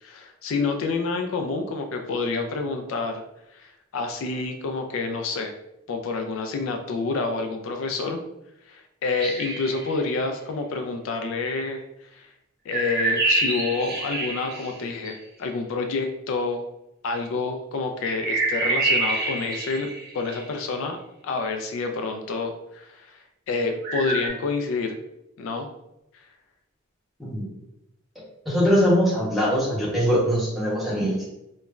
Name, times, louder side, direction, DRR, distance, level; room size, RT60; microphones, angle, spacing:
voice 1, 0.0-3.2 3.5-5.5 5.9-8.2 8.7-11.8 12.1-12.3 12.7-16.6 17.0-19.9 20.1-21.0 21.2-23.2 23.5-25.0 25.4-25.7, left 3 dB, 80° left, 5 dB, 0.3 m, -28 dB
sound 1, 9.1-10.1 12.7-15.1 18.0-20.6 23.8-24.3, right 2 dB, 55° right, 0.7 m, -26 dB
voice 2, 28.5-31.2, equal, ahead, -7 dB, 0.9 m, -22 dB
3.0 x 2.1 x 2.4 m, 0.84 s
head